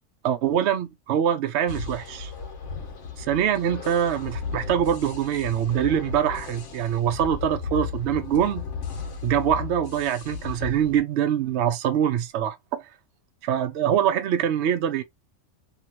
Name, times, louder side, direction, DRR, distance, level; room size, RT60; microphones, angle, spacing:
voice 1, 0.2-2.3 3.2-8.6 9.2-12.9 13.4-15.0, right 9 dB, 65° right, 0.8 m, -24 dB
sound 1, 1.7-11.0, left 6 dB, 70° left, 1.2 m, -35 dB
2.8 x 2.8 x 2.8 m
omnidirectional pair, 1.3 m